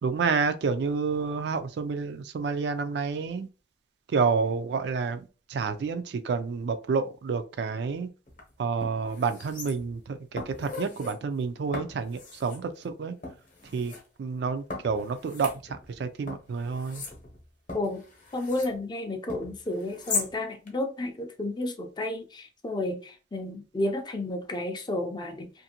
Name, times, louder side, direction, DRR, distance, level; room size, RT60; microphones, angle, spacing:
voice 1, 0.0-3.5 4.1-8.1 8.6-13.1 13.7-13.9 14.2-15.5 16.0-17.0, right 5 dB, 65° right, 0.3 m, -29 dB
sound 1, 8.3-8.4 8.8-10.0 10.4-11.1 11.7-12.6 13.2-14.0 14.7-16.0 16.3-18.8 19.3-20.3 20.7-20.8, left 4 dB, 45° left, 0.8 m, -38 dB
voice 2, 18.3-25.5, left 1 dB, 25° left, 0.4 m, -32 dB
2.6 x 2.5 x 2.8 m
head